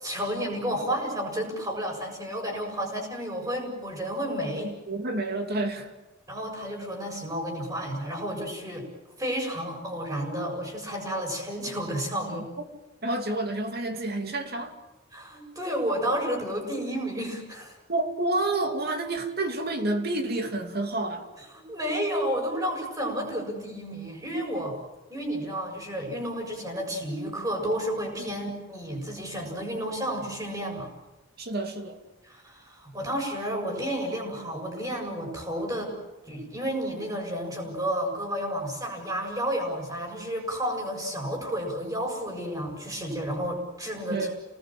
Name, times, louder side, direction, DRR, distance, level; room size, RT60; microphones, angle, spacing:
voice 1, 0.0-4.7 6.3-8.9 9.2-12.5 15.1-17.8 21.4-24.7 25.1-30.9 32.3-35.9 36.3-44.3, equal, 20° right, 7.1 m, -31 dB
voice 2, 4.6-5.9 12.6-12.7 13.0-14.7 17.9-21.3 28.3-28.4 31.4-32.0 44.1-44.4, right 2 dB, 50° right, 2.8 m, -29 dB
29.0 x 20.0 x 7.7 m
head